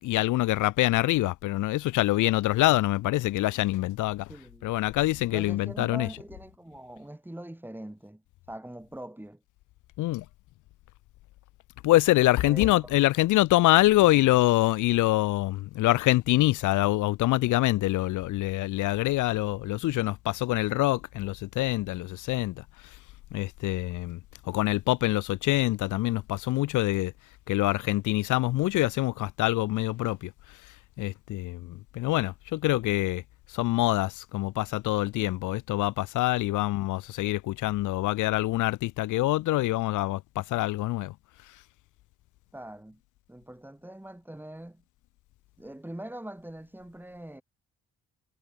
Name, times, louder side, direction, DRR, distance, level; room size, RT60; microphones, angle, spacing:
voice 1, 0.0-4.3 4.6-6.1 10.0-10.2 11.8-22.6 23.3-24.2 24.5-27.1 27.5-30.3 31.0-33.2 33.5-41.1, left 17 dB, 85° left, 0.8 m, -25 dB
voice 2, 4.3-4.7 5.3-8.2 8.5-9.4 12.4-13.0 42.5-43.0 43.3-44.8 45.6-47.4, right 1 dB, 5° right, 7.0 m, -42 dB
cardioid pair, 90°, 30 cm